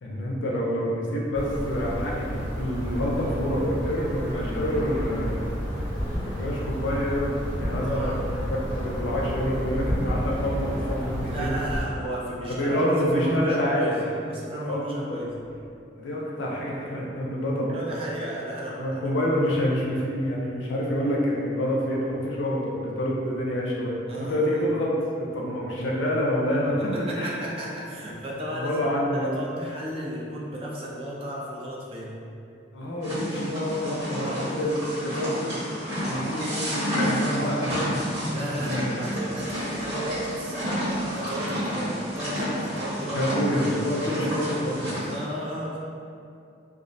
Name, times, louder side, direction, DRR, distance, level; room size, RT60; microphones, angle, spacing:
voice 1, 0.0-5.5 6.2-11.6 12.6-13.9 14.6-15.2 16.0-17.7 18.8-26.8 27.1-27.4 28.5-29.3 29.6-29.7 32.7-35.5 36.0-38.0 38.3-38.8 43.1-45.1, equal, 70° left, -3 dB, 0.4 m, -27 dB
sound 1, 1.3-11.8, equal, 65° right, 0.9 m, -31 dB
voice 2, 7.8-8.2 11.3-15.3 17.7-19.3 24.1-24.5 26.8-28.8 29.1-32.1 34.1-34.6 38.3-43.3 45.1-45.8, right 1 dB, 30° right, -5 dB, 0.3 m, -34 dB
sound 2, 15.2-15.7, equal, 10° left, 0.6 m, -46 dB
sound 3, 33.0-45.2, equal, 85° right, 1.3 m, -30 dB
2.3 x 2.1 x 2.5 m, 2.5 s
head